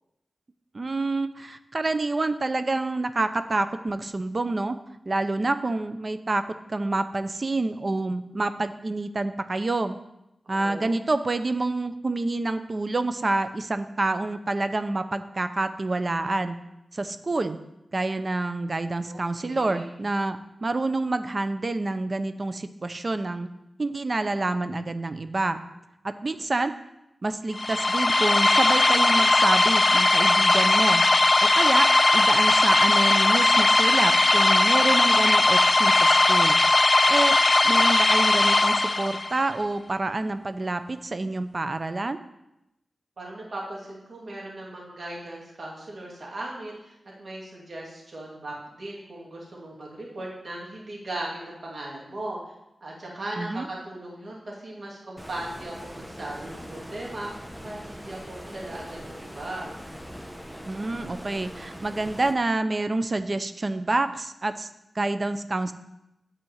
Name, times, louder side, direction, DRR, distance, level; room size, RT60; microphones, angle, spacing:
voice 1, 0.7-4.8 5.1-10.0 10.5-16.6 16.9-17.6 17.9-23.5 23.8-25.6 26.2-26.7 27.2-31.0 31.5-36.6 37.1-37.4 37.6-42.2 53.4-53.7 60.7-64.7 64.9-65.7, right 2 dB, 45° right, 10 dB, 0.7 m, -27 dB
voice 2, 10.4-10.9 19.1-19.9 43.2-52.4 52.8-57.3 57.6-59.7, right 1 dB, 65° right, -3 dB, 2.5 m, -38 dB
sound 1, 27.5-39.4, left 2 dB, 35° left, 0.3 m, -19 dB
Stream, 55.2-62.4, equal, 5° right, 1.0 m, -41 dB
9.8 x 4.4 x 7.3 m, 0.87 s
cardioid pair, 60°, 0 cm